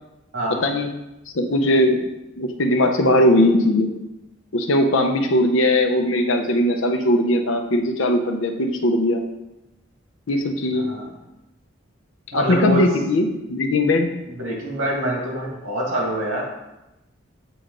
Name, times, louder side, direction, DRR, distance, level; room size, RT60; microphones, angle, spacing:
voice 1, 1.3-2.1 2.4-3.9 4.5-9.2 10.3-10.9 12.3-14.1, left 1 dB, 75° left, 4 dB, 0.7 m, -19 dB
voice 2, 10.7-11.1 12.3-12.8 14.3-16.5, right 1 dB, 90° right, -2 dB, 1.9 m, -25 dB
7.7 x 3.4 x 3.8 m, 0.95 s
head